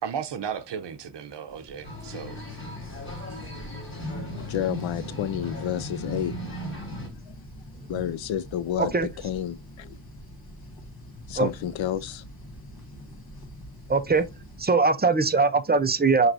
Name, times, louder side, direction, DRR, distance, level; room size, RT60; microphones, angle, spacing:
voice 1, 0.0-2.4, right 7 dB, 65° right, 0.7 m, -34 dB
sound 1, 1.5-14.6, equal, 50° left, 1.1 m, -45 dB
sound 2, 1.8-7.1, equal, 25° left, 1.4 m, -36 dB
voice 2, 4.3-6.4 7.9-10.0 11.3-12.2, left 10 dB, 75° left, 0.5 m, -30 dB
voice 3, 13.9-14.2 14.6-16.3, right 4 dB, 25° right, 0.3 m, -21 dB
5.9 x 3.0 x 2.5 m
wide cardioid pair, 175°, 46 cm